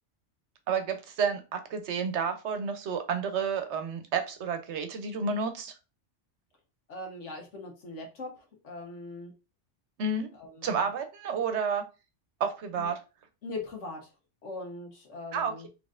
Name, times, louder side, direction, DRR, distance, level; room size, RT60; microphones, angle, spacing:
voice 1, 0.7-5.7 10.0-10.3 10.6-11.8 12.4-13.0 15.3-15.7, right 5 dB, 75° right, 8 dB, 0.9 m, -30 dB
voice 2, 6.9-9.3 10.3-10.9 12.8-12.9 13.4-14.1 14.4-15.7, left 2 dB, 80° left, 0 dB, 1.5 m, -41 dB
3.9 x 3.2 x 2.5 m, 0.29 s
omnidirectional pair, 1.2 m